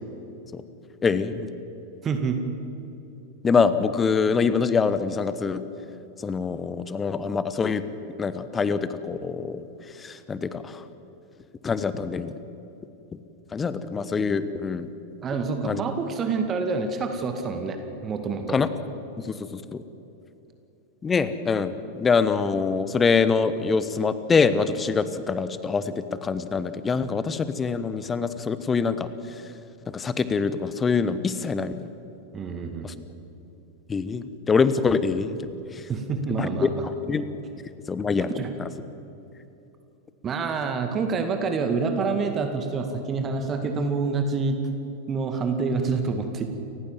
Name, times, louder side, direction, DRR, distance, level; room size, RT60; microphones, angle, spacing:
voice 1, 1.0-1.5 3.4-5.6 6.2-7.8 8.2-9.7 10.0-10.8 11.6-12.3 13.1-13.2 13.5-14.9 15.6-15.8 18.5-18.7 19.2-19.8 21.0-29.1 29.9-31.7 32.8-32.9 33.9-35.9 36.4-36.7 37.1-37.3 37.9-38.3 38.6-38.7, left 5 dB, 15° left, 14 dB, 1.1 m, -24 dB
voice 2, 2.0-2.4 15.2-18.6 32.3-32.9 35.9-36.8 38.4-38.5 40.2-44.6 45.1-46.5, right 4 dB, 25° right, 6 dB, 2.1 m, -27 dB
29.5 x 15.5 x 7.5 m, 3.0 s
figure-of-eight pair, 90°, 0 cm